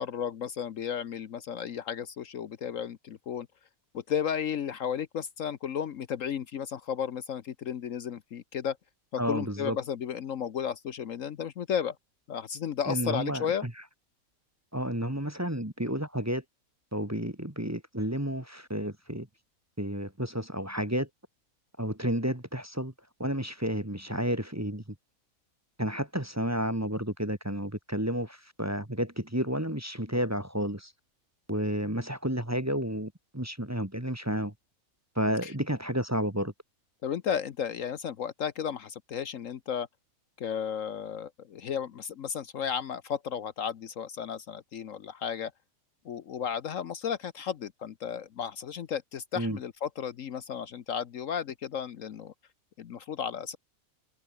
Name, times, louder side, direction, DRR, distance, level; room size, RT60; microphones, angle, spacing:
voice 1, 0.0-3.5 3.9-8.8 9.1-12.0 12.3-13.7 35.4-35.5 37.0-39.9 40.4-45.5 46.0-52.3 52.8-53.6, left 8 dB, 65° left, 1.2 m, -34 dB
voice 2, 9.2-9.8 12.9-13.7 14.7-16.4 16.9-19.3 19.8-21.1 21.8-22.9 23.2-24.8 25.8-30.9 31.5-34.5 35.2-36.5 49.3-49.6, equal, 10° right, 1.9 m, -31 dB
omnidirectional pair, 1.5 m